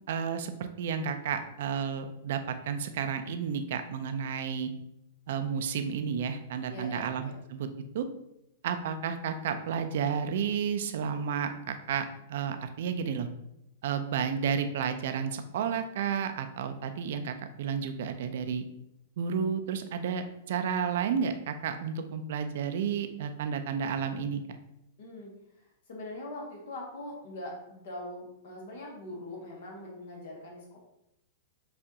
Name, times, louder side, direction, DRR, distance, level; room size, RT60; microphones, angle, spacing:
voice 1, 0.1-4.7 5.3-7.7 7.9-8.1 8.6-13.3 13.8-18.6 19.2-24.4, right 7 dB, 65° right, 8 dB, 0.5 m, -32 dB
voice 2, 6.7-7.3 25.0-25.3 25.6-30.8, left 1 dB, 70° left, -2 dB, 1.3 m, -42 dB
6.7 x 2.5 x 2.9 m, 0.83 s
hypercardioid pair, 135°, 0 cm